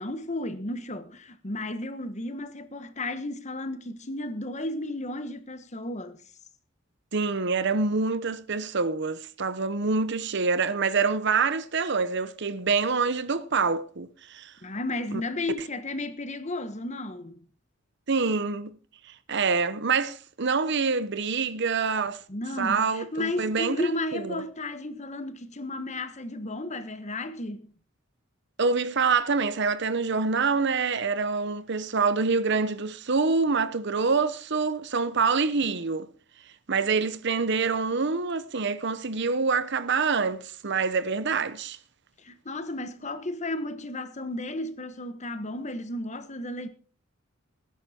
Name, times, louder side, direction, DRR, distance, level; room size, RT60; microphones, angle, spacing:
voice 1, 0.0-6.2 14.6-17.4 22.3-27.7 42.2-46.7, left 2 dB, 35° left, 1.4 m, -33 dB
voice 2, 7.1-14.5 18.1-18.8 19.3-22.2 22.6-24.4 28.6-36.1 36.7-41.8, right 4 dB, 60° right, 0.9 m, -26 dB
18.5 x 10.5 x 4.4 m
head